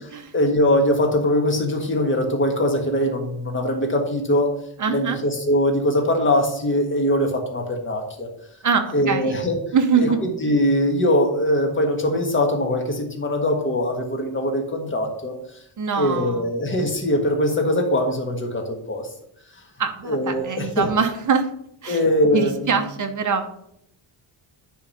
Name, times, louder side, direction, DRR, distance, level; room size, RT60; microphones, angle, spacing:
voice 1, 0.3-4.5 4.9-8.3 8.9-9.6 10.0-15.3 16.0-19.1 20.0-20.9 21.9-22.7, left 1 dB, 25° left, 3 dB, 1.6 m, -22 dB
voice 2, 4.8-5.2 8.6-9.4 9.7-10.2 15.8-16.4 19.8-21.5 21.8-22.0 22.3-23.5, right 5 dB, 40° right, 6 dB, 1.0 m, -23 dB
10.5 x 3.7 x 7.0 m, 0.73 s
wide cardioid pair, 170°, 48 cm